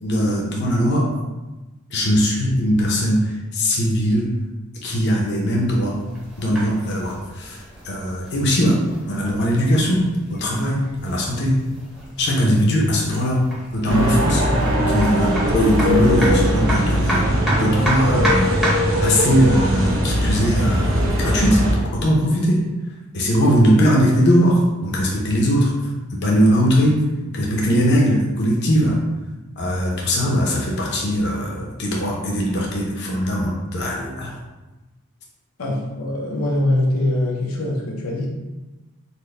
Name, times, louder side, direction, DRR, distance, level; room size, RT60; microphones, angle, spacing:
voice 1, 0.0-1.1 1.9-4.3 4.8-5.9 6.4-8.8 9.1-10.1 10.3-11.6 12.2-13.4 13.7-18.6 19.0-21.6 22.0-22.6 23.1-25.7 26.1-27.0 27.3-29.0 29.6-34.3, equal, 55° left, -3 dB, 0.7 m, -20 dB
sound 1, 5.7-19.0, right 1 dB, 5° right, 0.8 m, -31 dB
sound 2, 13.9-21.7, equal, 85° right, 0.9 m, -20 dB
voice 2, 35.6-38.3, left 1 dB, 90° left, -2 dB, 0.7 m, -22 dB
4.2 x 2.2 x 3.3 m, 1.1 s
head